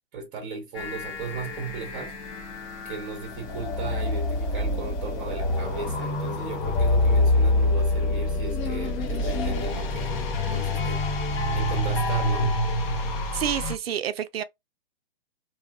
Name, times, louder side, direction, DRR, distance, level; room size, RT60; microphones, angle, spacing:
voice 1, 0.1-2.1 2.8-10.3 10.5-11.0 11.5-12.5, right 4 dB, 25° right, 0.7 m, -36 dB
sound 1, 0.7-13.7, left 2 dB, 20° left, 0.4 m, -26 dB
sound 2, 5.2-10.9, left 5 dB, 70° left, 1.0 m, -39 dB
voice 2, 13.3-14.4, right 9 dB, 80° right, 0.5 m, -28 dB
2.7 x 2.3 x 2.2 m
hypercardioid pair, 125°, 30 cm